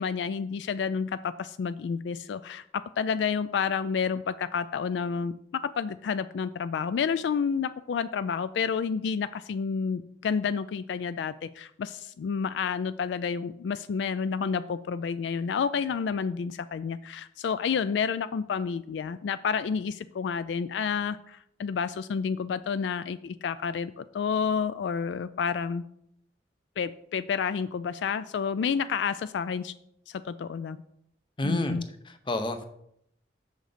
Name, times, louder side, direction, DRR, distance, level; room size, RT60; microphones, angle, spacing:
voice 1, 0.0-25.9 26.8-29.7 30.1-30.8 31.4-31.8, left 6 dB, 75° left, 14 dB, 0.3 m, -30 dB
voice 2, 31.4-31.8 32.1-32.6, left 1 dB, 30° left, 9 dB, 0.7 m, -29 dB
6.7 x 6.3 x 5.0 m, 0.74 s
head